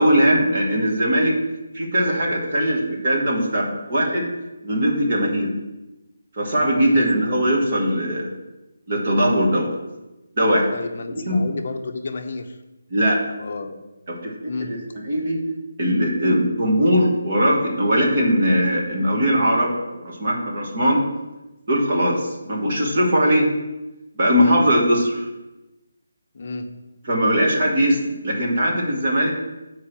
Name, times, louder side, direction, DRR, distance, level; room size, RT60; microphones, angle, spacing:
voice 1, 0.0-1.4 1.7-4.3 4.6-5.5 6.4-8.3 8.9-9.7 10.4-10.7 11.1-11.4 12.9-13.2 14.1-14.3 14.7-14.8 15.0-15.4 15.8-21.0 21.7-23.5 24.1-25.3 27.1-29.3, equal, 30° right, -2 dB, 1.5 m, -20 dB
voice 2, 10.7-12.6 13.4-13.8 14.5-14.7 24.3-24.6 26.3-26.7, left 3 dB, 35° left, 4 dB, 0.8 m, -31 dB
7.3 x 4.7 x 6.0 m, 1.0 s
hypercardioid pair, 180°, 0 cm